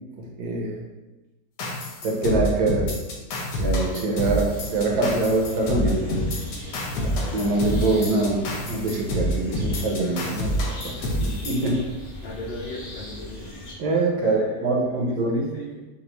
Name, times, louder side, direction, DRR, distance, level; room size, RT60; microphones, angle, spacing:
voice 1, 0.2-0.8 2.0-2.9 3.6-6.3 7.3-11.9 13.8-15.5, right 2 dB, 70° right, -1 dB, 1.3 m, -24 dB
sound 1, 1.6-11.7, equal, 80° left, 1.4 m, -28 dB
sound 2, 4.5-13.7, left 1 dB, 40° left, 0.9 m, -39 dB
voice 2, 6.9-7.3 12.2-13.5 14.2-15.8, left 2 dB, 60° left, -4 dB, 0.6 m, -38 dB
5.2 x 2.5 x 3.0 m, 1.1 s
omnidirectional pair, 1.9 m